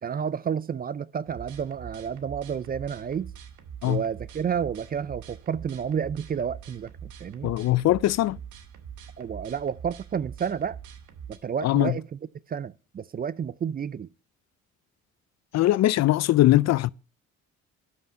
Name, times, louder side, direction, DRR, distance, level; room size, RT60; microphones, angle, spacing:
voice 1, 0.0-3.3 3.8-7.5 9.2-10.8 11.3-12.2 12.5-14.1, right 7 dB, 30° right, 0.4 m, -30 dB
sound 1, 1.3-11.4, right 8 dB, 80° right, 1.2 m, -44 dB
voice 2, 7.4-8.4 11.6-11.9 15.5-16.9, left 15 dB, 60° left, 0.4 m, -21 dB
12.0 x 5.8 x 5.3 m
cardioid pair, 90°, 30 cm